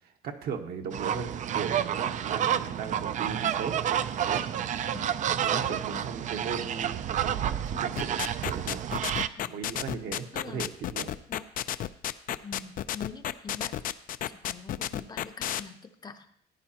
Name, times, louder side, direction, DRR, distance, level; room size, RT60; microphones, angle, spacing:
voice 1, 0.2-3.8 4.1-4.4 5.4-8.2 8.5-8.8 9.5-11.1, right 6 dB, 65° right, 4 dB, 1.3 m, -37 dB
sound 1, 0.9-9.3, right 9 dB, 45° right, 0.4 m, -29 dB
voice 2, 5.7-6.1 9.4-9.6 10.3-10.7 11.3-11.4 12.4-13.7 14.3-16.3, left 5 dB, 25° left, 8 dB, 0.7 m, -44 dB
sound 2, 8.0-15.6, left 11 dB, 55° left, 0.5 m, -31 dB
15.0 x 9.6 x 2.9 m, 0.69 s
cardioid pair, 110°, 17 cm